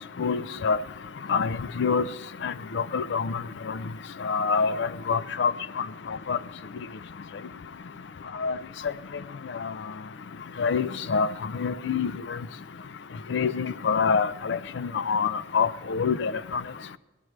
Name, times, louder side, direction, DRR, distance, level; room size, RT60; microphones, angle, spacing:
voice 1, 0.2-0.8 1.3-2.0 2.4-3.4 4.2-5.5 6.3-6.4 8.4-8.6 10.6-11.3 11.6-12.1 13.3-16.6, left 5 dB, 75° left, 0.4 m, -26 dB
17.5 x 12.0 x 3.2 m
head